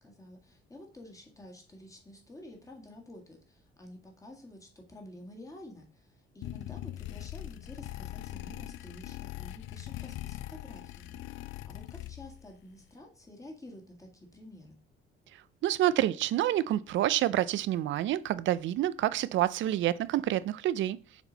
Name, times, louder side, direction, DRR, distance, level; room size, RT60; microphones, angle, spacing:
voice 1, 0.0-14.8, left 1 dB, 15° left, 1.8 m, -50 dB
sound 1, 6.4-12.5, left 15 dB, 70° left, 0.4 m, -41 dB
voice 2, 15.6-21.0, right 13 dB, 65° right, 0.5 m, -28 dB
6.9 x 4.4 x 4.0 m
cardioid pair, 130°, 21 cm